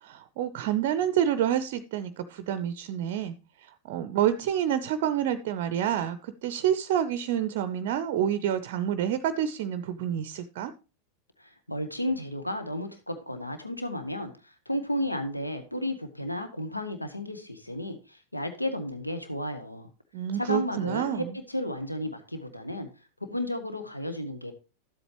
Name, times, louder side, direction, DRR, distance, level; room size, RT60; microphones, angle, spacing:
voice 1, 0.0-10.7 20.1-21.4, right 10 dB, 50° right, 13 dB, 0.5 m, -28 dB
voice 2, 11.4-19.9 20.3-22.9 23.3-24.5, left 1 dB, 85° left, 8 dB, 0.9 m, -33 dB
12.5 x 7.9 x 3.1 m, 0.31 s
figure-of-eight pair, 90°, 0 cm